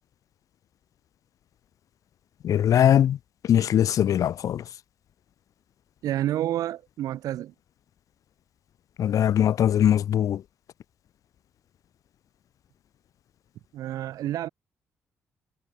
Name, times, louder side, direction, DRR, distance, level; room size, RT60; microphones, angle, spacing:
voice 1, 2.4-3.2 3.5-4.6 9.0-10.4, left 10 dB, 70° left, 1.0 m, -21 dB
voice 2, 6.0-7.5 13.7-14.5, right 13 dB, 80° right, 6.9 m, -29 dB
supercardioid pair, 60°, 6 cm